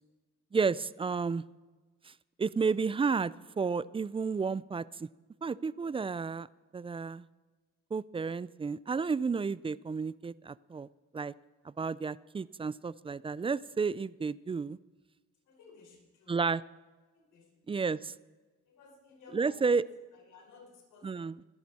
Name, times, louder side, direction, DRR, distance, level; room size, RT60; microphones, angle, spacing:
voice 1, 0.5-1.4 2.1-2.2 2.4-5.1 5.4-6.5 6.7-7.3 7.9-10.9 11.1-11.3 11.6-14.8 16.3-16.6 17.7-18.1 19.3-19.8 21.0-21.3, right 5 dB, 20° right, 19 dB, 0.4 m, -31 dB
voice 2, 15.4-16.4 17.1-18.0 18.6-21.5, left 4 dB, 80° left, 0 dB, 5.2 m, -57 dB
25.5 x 10.5 x 4.2 m, 1.3 s
cardioid pair, 90°, 30 cm